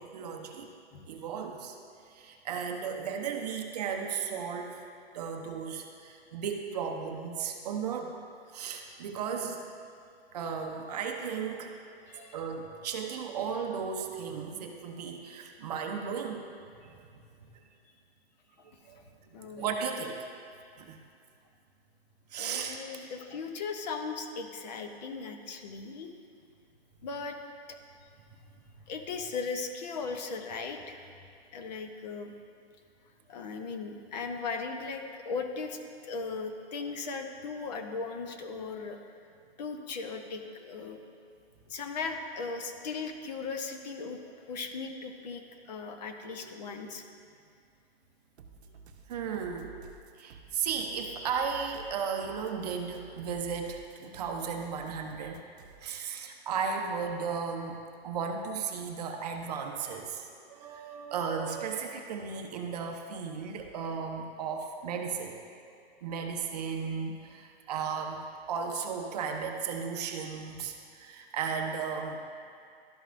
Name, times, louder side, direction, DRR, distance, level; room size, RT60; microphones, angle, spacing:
voice 1, 0.0-0.7 1.1-1.8 2.1-4.9 5.1-8.2 8.5-9.6 10.3-11.7 12.3-16.5 16.8-17.5 18.8-19.0 19.6-20.3 20.8-21.0 22.3-22.8 46.2-46.9 49.1-49.8 50.2-55.4 55.8-57.8 58.0-65.4 66.0-68.2 68.5-72.2, right 6 dB, 40° right, 3 dB, 0.6 m, -35 dB
voice 2, 12.1-12.4 19.3-19.7 22.4-26.1 27.0-27.4 27.7-27.8 28.9-31.0 31.5-32.3 33.3-39.0 39.6-41.0 41.7-44.2 44.5-47.0, left 4 dB, 40° left, 5 dB, 0.7 m, -38 dB
sound 1, 48.4-56.0, right 4 dB, 85° right, 0.7 m, -52 dB
12.5 x 5.3 x 2.5 m, 2.4 s
hypercardioid pair, 160°, 32 cm